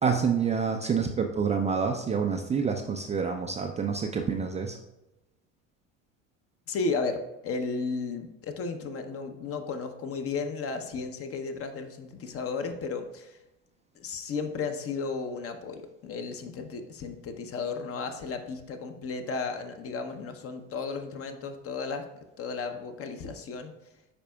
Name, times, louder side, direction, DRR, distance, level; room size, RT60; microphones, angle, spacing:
voice 1, 0.0-4.8, right 6 dB, 20° right, 3 dB, 0.4 m, -27 dB
voice 2, 6.7-13.4 14.0-22.1 22.4-23.7, left 4 dB, 35° left, 7 dB, 0.8 m, -34 dB
10.0 x 4.2 x 2.3 m, 0.94 s
hypercardioid pair, 75°, 39 cm